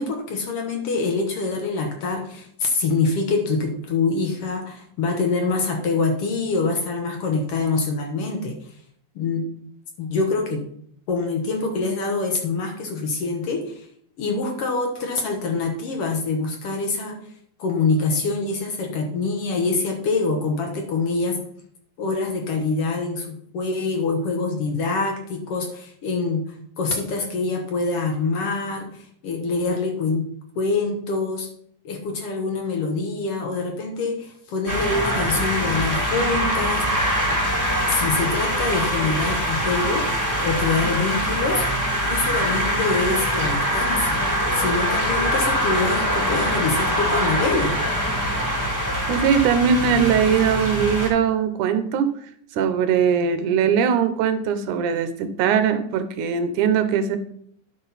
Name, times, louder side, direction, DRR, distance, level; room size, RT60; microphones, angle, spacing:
voice 1, 0.0-8.8 9.1-9.5 10.0-10.7 11.1-13.9 14.2-17.2 17.6-21.4 22.0-30.3 30.5-31.5 31.8-37.4 37.9-40.1 40.4-41.7 42.0-44.3 44.5-47.8, left 3 dB, 70° left, 4 dB, 1.4 m, -25 dB
sound 1, 34.7-51.1, equal, 5° left, 1.9 m, -23 dB
voice 2, 49.1-52.1 52.6-57.2, right 7 dB, 70° right, 10 dB, 2.1 m, -20 dB
11.0 x 6.0 x 4.1 m, 0.66 s
omnidirectional pair, 4.0 m